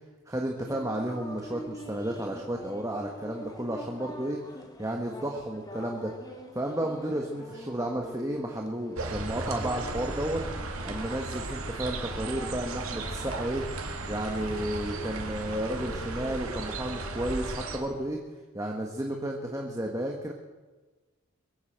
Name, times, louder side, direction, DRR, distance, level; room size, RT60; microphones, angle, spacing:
voice 1, 0.3-4.4 4.8-6.1 6.5-10.4 10.9-13.6 14.1-18.2 18.5-20.3, right 1 dB, 15° right, 1 dB, 1.3 m, -32 dB
sound 1, 0.6-18.2, equal, 15° left, 1.5 m, -45 dB
sound 2, 9.0-17.8, right 2 dB, 75° right, 2.1 m, -36 dB
22.5 x 8.0 x 7.9 m, 1.3 s
head